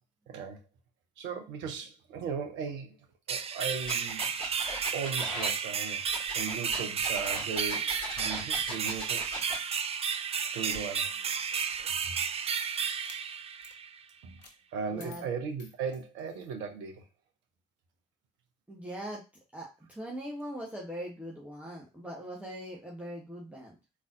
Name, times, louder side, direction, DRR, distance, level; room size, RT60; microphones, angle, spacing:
voice 1, 0.3-0.6 1.2-3.0 3.3-4.3 4.9-6.0 6.3-9.2 10.5-11.1 14.2-14.4 14.7-17.0, right 6 dB, 60° right, 0.8 m, -37 dB
sound 1, 3.3-14.0, right 7 dB, 30° right, 0.4 m, -32 dB
sound 2, 3.8-5.5 6.1-9.6, left 1 dB, 25° left, 2.2 m, -39 dB
sound 3, 10.5-12.1 12.9-13.2 13.6-13.8 14.4-14.6 15.0-16.5, left 3 dB, 80° left, 0.6 m, -54 dB
voice 2, 14.9-15.2 18.7-19.2 19.5-23.8, equal, 5° right, 1.2 m, -41 dB
3.7 x 3.1 x 2.6 m
figure-of-eight pair, 40°, 21 cm